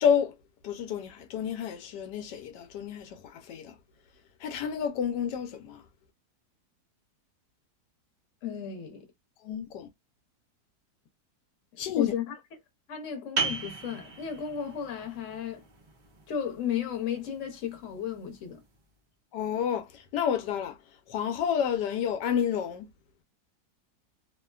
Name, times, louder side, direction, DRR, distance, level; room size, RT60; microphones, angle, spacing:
voice 1, 0.0-0.3 0.6-3.1 3.5-3.7 4.4-5.8 9.4-9.9 11.8-12.1 19.3-19.9 20.1-20.7 21.1-22.9, left 8 dB, 85° left, 1.2 m, -29 dB
voice 2, 8.4-9.0 11.9-12.6 12.9-15.6 16.3-18.6, left 8 dB, 55° left, 1.1 m, -34 dB
sound 1, 13.4-18.7, right 4 dB, 65° right, 0.4 m, -37 dB
2.9 x 2.2 x 2.3 m
omnidirectional pair, 1.8 m